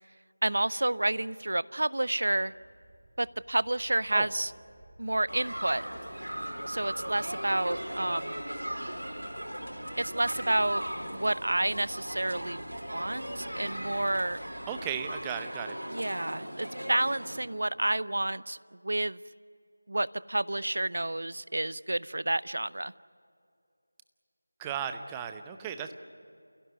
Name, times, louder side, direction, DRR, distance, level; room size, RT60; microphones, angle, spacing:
voice 1, 0.4-2.5 3.2-4.5 5.0-5.9 6.7-8.4 10.0-10.8 11.1-12.6 12.9-14.4 15.9-18.6 18.8-19.2 19.9-22.9, right 1 dB, 65° right, 19 dB, 0.6 m, -29 dB
sound 1, 2.4-15.3, right 1 dB, 35° right, 2.9 m, -54 dB
sound 2, 5.3-17.4, equal, 85° right, 5.1 m, -38 dB
voice 2, 14.7-15.8 24.6-25.9, right 8 dB, 10° right, 8 dB, 0.7 m, -35 dB
29.5 x 16.5 x 9.4 m, 2.4 s
figure-of-eight pair, 170°, 0 cm